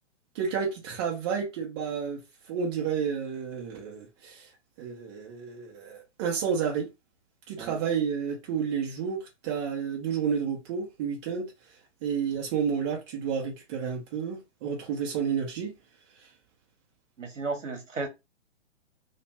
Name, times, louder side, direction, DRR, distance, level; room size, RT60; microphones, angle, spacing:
voice 1, 0.3-2.2 2.5-4.4 4.8-6.9 7.5-11.5 12.0-15.7, right 7 dB, 25° right, 0.7 m, -30 dB
voice 2, 17.2-18.1, right 3 dB, 75° right, 1.0 m, -34 dB
2.5 x 2.3 x 3.0 m
figure-of-eight pair, 125°, 37 cm